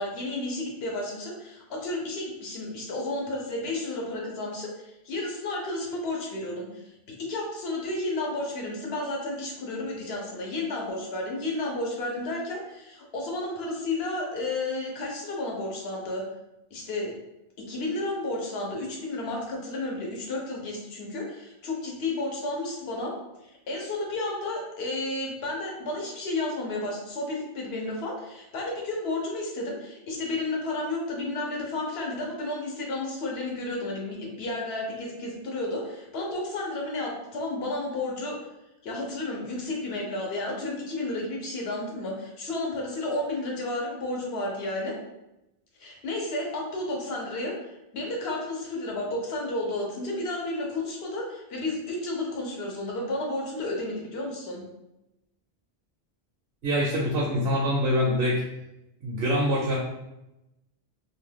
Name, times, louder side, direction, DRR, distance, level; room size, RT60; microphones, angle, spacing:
voice 1, 0.0-6.9 7.2-16.2 16.7-17.1 17.6-23.1 23.4-38.4 38.8-44.9 45.8-54.6, left 2 dB, 75° left, -1 dB, 1.0 m, -32 dB
voice 2, 56.6-58.4 59.0-59.8, equal, 70° right, -4 dB, 0.8 m, -24 dB
2.5 x 2.2 x 3.2 m, 0.91 s
omnidirectional pair, 1.1 m